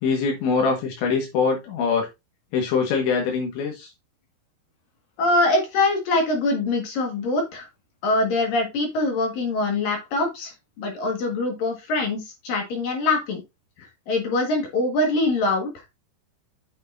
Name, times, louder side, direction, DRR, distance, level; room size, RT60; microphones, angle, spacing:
voice 1, 0.0-2.1 2.5-3.9, left 5 dB, 80° left, 1 dB, 3.9 m, -23 dB
voice 2, 5.2-7.7 8.0-13.4 13.8-15.9, left 2 dB, 60° left, 3 dB, 3.0 m, -24 dB
9.3 x 6.6 x 2.6 m, 0.22 s
omnidirectional pair, 5.2 m